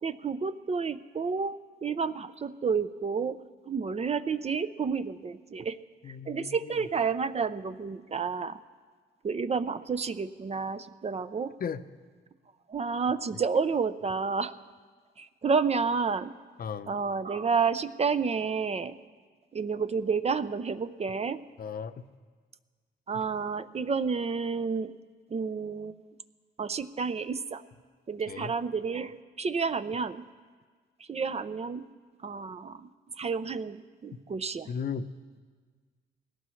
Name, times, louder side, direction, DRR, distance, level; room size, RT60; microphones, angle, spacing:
voice 1, 0.0-1.6 1.8-3.4 3.7-5.8 6.1-8.6 9.2-11.5 12.7-14.5 15.2-16.3 16.9-19.0 19.5-21.4 23.1-24.9 25.3-26.1 26.6-27.6 28.1-30.2 31.1-31.9 32.2-32.9 33.2-34.7, right 5 dB, 30° right, 12 dB, 0.6 m, -30 dB
voice 2, 6.0-6.9 11.6-11.8 16.6-16.9 21.6-22.1 23.1-23.2 28.3-28.5 34.7-35.1, left 6 dB, 50° left, 11 dB, 0.7 m, -36 dB
20.0 x 17.5 x 3.2 m, 1.5 s
cardioid pair, 90°, 20 cm